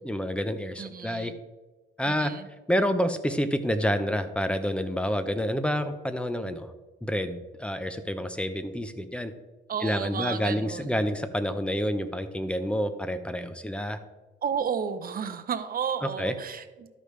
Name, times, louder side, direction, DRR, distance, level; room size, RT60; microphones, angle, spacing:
voice 1, 0.0-1.3 2.0-2.3 2.7-6.7 7.0-9.3 9.8-14.0 16.2-16.3, equal, 5° left, 10 dB, 0.7 m, -28 dB
voice 2, 0.8-1.4 2.0-2.5 9.7-11.1 14.4-16.9, right 7 dB, 45° right, 10 dB, 0.7 m, -32 dB
13.0 x 5.1 x 3.2 m, 1.2 s
cardioid pair, 90°, 20 cm